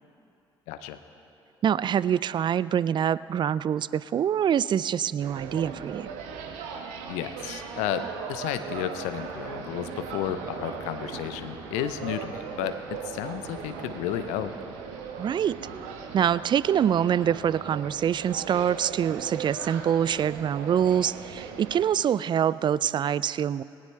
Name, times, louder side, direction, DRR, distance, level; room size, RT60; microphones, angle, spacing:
voice 1, 0.7-1.0 7.0-14.5, left 10 dB, 70° left, 10 dB, 0.7 m, -32 dB
voice 2, 1.6-6.1 15.2-15.6 16.1-23.6, right 9 dB, 40° right, 19 dB, 0.4 m, -25 dB
sound 1, 5.2-21.9, right 6 dB, 70° right, 1.2 m, -38 dB
19.5 x 18.5 x 3.3 m, 2.7 s
figure-of-eight pair, 50°, 13 cm